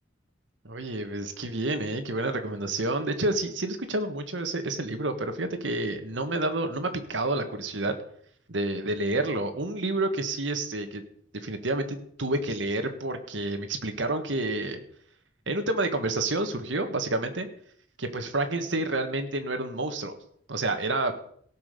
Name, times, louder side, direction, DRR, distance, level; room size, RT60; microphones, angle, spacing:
voice 1, 0.7-7.9 8.5-11.0 11.3-14.8 15.5-17.5 18.0-20.1 20.5-21.1, right 2 dB, 90° right, 8 dB, 1.7 m, -29 dB
17.0 x 5.8 x 6.8 m, 0.63 s
head